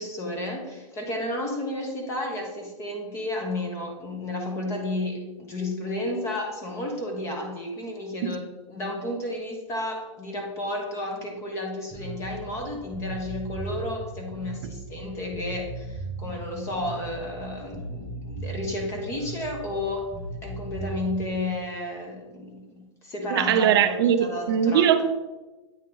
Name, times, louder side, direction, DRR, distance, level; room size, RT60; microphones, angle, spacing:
voice 1, 0.0-20.1 20.4-24.9, left 1 dB, 15° left, 2 dB, 0.9 m, -32 dB
Bass guitar, 11.9-21.4, right 2 dB, 10° right, 1.7 m, -37 dB
voice 2, 23.3-25.2, right 8 dB, 50° right, 9 dB, 0.5 m, -21 dB
8.7 x 3.6 x 3.8 m, 1.1 s
hypercardioid pair, 160°, 16 cm